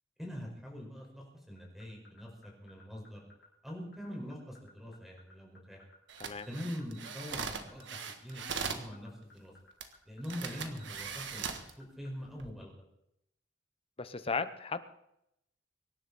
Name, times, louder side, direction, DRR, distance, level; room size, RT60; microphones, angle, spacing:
voice 1, 0.2-3.2 3.6-5.8 6.5-9.5 10.0-12.8, equal, ahead, -1 dB, 5.1 m, -44 dB
sound 1, 1.6-12.1, left 3 dB, 60° left, 5.6 m, -58 dB
sound 2, 6.1-8.9 9.8-9.9 10.2-11.7 12.3-12.5, right 6 dB, 75° right, 1.6 m, -40 dB
voice 2, 14.0-14.9, left 4 dB, 30° left, 11 dB, 0.9 m, -35 dB
24.0 x 11.0 x 4.3 m, 0.79 s
head